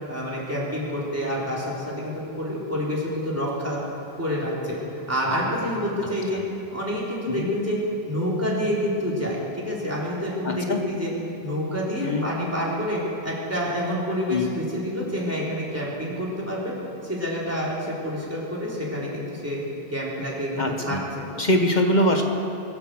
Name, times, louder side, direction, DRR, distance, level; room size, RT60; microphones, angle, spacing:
voice 1, 0.1-3.8 4.2-6.4 6.7-7.8 8.0-11.1 11.4-16.7 17.0-19.6 19.9-21.3, equal, 15° right, -6 dB, 3.7 m, -28 dB
voice 2, 10.4-10.8 12.0-12.3 14.3-14.5 20.6-21.0 21.4-22.2, left 1 dB, 45° left, 3 dB, 1.2 m, -22 dB
23.0 x 8.1 x 7.7 m, 2.8 s
omnidirectional pair, 1.0 m